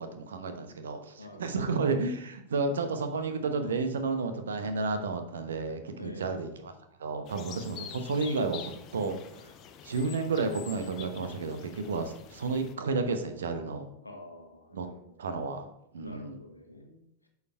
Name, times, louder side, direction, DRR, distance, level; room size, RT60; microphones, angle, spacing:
voice 1, 0.0-6.7 7.0-9.5 9.8-13.9 14.7-14.9 15.2-15.7 15.9-16.4, right 4 dB, 65° right, 8 dB, 1.0 m, -32 dB
voice 2, 1.2-1.6 6.0-6.4 7.5-7.9 14.0-15.2 16.0-17.3, left 2 dB, 85° left, 4 dB, 1.2 m, -48 dB
sound 1, 7.3-12.7, left 9 dB, 35° left, 0.7 m, -47 dB
8.2 x 4.8 x 4.6 m, 0.80 s
figure-of-eight pair, 90°, 0 cm